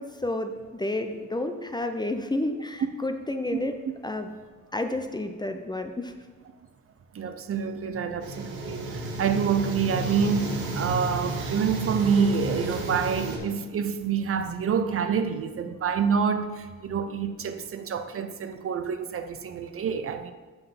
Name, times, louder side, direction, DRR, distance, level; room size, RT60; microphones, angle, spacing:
voice 1, 0.0-3.7 4.0-4.3 4.7-6.1, left 2 dB, 15° left, 0.5 m, -30 dB
voice 2, 7.1-20.3, right 6 dB, 45° right, 0.6 m, -27 dB
sound 1, 8.2-13.4, right 3 dB, 85° right, 1.4 m, -32 dB
5.7 x 5.5 x 5.8 m
cardioid pair, 90°, 30 cm